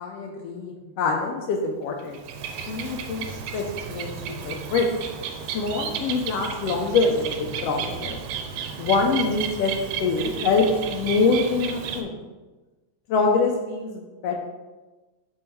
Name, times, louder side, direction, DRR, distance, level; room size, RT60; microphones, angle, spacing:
voice 1, 0.0-2.2 2.7-4.9 5.5-8.2 8.8-9.7 10.0-12.2 13.1-14.4, left 4 dB, 80° left, 2 dB, 1.4 m, -25 dB
Bird, 2.0-12.0, right 7 dB, 85° right, 2.0 m, -33 dB
6.3 x 3.5 x 4.5 m, 1.2 s
omnidirectional pair, 3.3 m